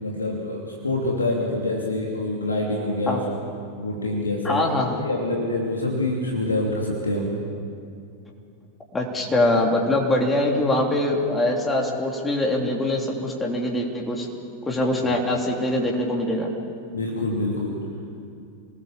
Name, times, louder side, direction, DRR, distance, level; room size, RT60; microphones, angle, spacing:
voice 1, 0.0-3.2 3.7-4.6 5.0-7.3 15.0-15.1 16.9-17.8, left 2 dB, 75° left, -1 dB, 2.8 m, -26 dB
voice 2, 4.4-5.0 8.9-14.3 14.7-16.5, left 1 dB, 15° left, 0 dB, 3.2 m, -23 dB
27.0 x 19.0 x 7.2 m, 2.5 s
figure-of-eight pair, 90°, 0 cm